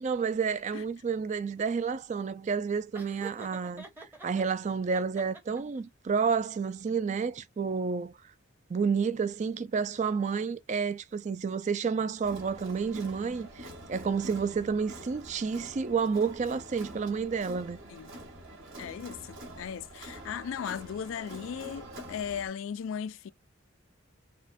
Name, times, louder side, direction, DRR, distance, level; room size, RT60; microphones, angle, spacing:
voice 1, 0.0-3.9 4.2-8.1 8.7-17.8, right 5 dB, 35° right, 0.3 m, -30 dB
Laughter, 2.9-4.4 4.9-5.8, right 3 dB, 10° right, 0.8 m, -46 dB
Crowd, 12.2-22.5, right 1 dB, 65° right, 2.4 m, -46 dB
voice 2, 18.8-23.3, left 7 dB, 75° left, 0.3 m, -37 dB
5.2 x 2.2 x 2.6 m
head